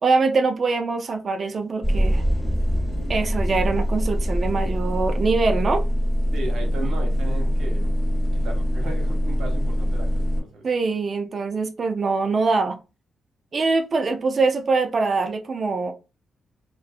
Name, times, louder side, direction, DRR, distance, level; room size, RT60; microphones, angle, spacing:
voice 1, 0.0-2.2 3.1-5.8 10.6-12.8 13.5-15.9, right 4 dB, 45° right, 0.4 m, -23 dB
sound 1, 1.8-10.4, equal, 10° left, 1.5 m, -23 dB
voice 2, 6.3-10.6, right 2 dB, 75° right, 1.0 m, -36 dB
2.5 x 2.5 x 2.3 m
cardioid pair, 90°, 0 cm